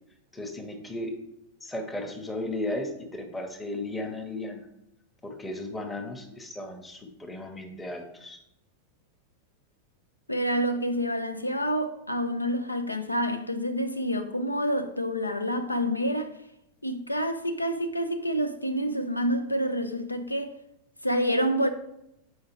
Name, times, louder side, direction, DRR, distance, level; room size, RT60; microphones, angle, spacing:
voice 1, 0.3-1.2 1.6-4.7 5.2-8.4, left 1 dB, 10° left, 0.9 m, -35 dB
voice 2, 10.3-16.3 16.8-20.6 21.0-21.7, equal, 85° left, 0.5 m, -28 dB
7.4 x 4.9 x 3.0 m
figure-of-eight pair, 90°, 0 cm